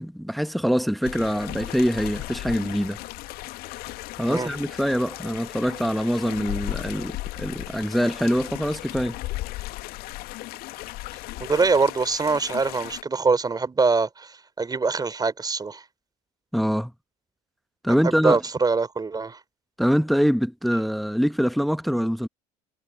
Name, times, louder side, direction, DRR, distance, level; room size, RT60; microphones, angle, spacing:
voice 1, 0.0-3.0 4.2-9.2 16.5-16.9 17.8-18.4 19.8-22.3, equal, ahead, 1.4 m, -24 dB
sound 1, 1.0-13.0, left 19 dB, 50° left, 1.9 m, -36 dB
voice 2, 11.4-15.8 17.9-19.4, right 4 dB, 20° right, 4.0 m, -24 dB
figure-of-eight pair, 65°, 19 cm